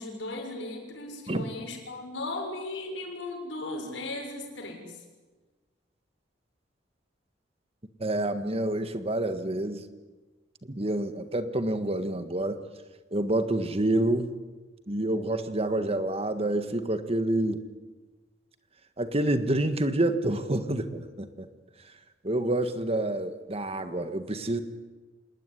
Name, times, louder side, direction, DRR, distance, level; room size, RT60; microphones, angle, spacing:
voice 1, 0.0-4.9, left 2 dB, 85° left, 3 dB, 6.6 m, -37 dB
voice 2, 8.0-9.8 10.7-12.6 13.1-14.4 14.9-17.6 19.0-21.5 22.2-24.6, right 1 dB, 35° right, 9 dB, 1.7 m, -28 dB
27.0 x 19.5 x 9.9 m, 1.3 s
head